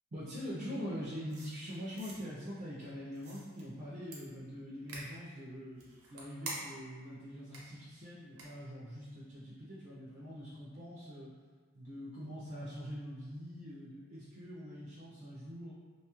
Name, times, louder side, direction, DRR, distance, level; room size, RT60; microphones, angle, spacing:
voice 1, 0.1-5.8 6.1-11.3 11.7-15.7, equal, 40° right, -8 dB, 0.4 m, -44 dB
sound 1, 1.3-2.2 3.2-3.6 4.1-4.2 4.9-5.1 5.7-6.9 7.5-7.6 8.4-8.5, right 2 dB, 80° right, 0.7 m, -45 dB
2.8 x 2.3 x 2.9 m, 1.5 s
head